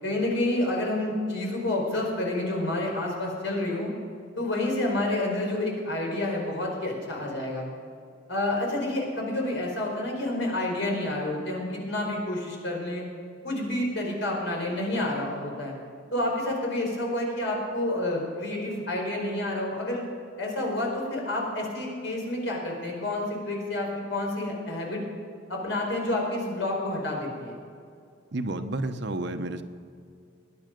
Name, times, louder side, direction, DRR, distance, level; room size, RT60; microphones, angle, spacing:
voice 1, 0.0-3.9 4.4-7.7 8.3-13.0 13.4-15.7 16.1-20.0 20.4-25.0 25.5-27.6, left 1 dB, 75° left, -1 dB, 4.8 m, -29 dB
voice 2, 28.3-29.6, right 2 dB, 65° right, 8 dB, 1.0 m, -30 dB
20.5 x 10.5 x 5.2 m, 2.4 s
head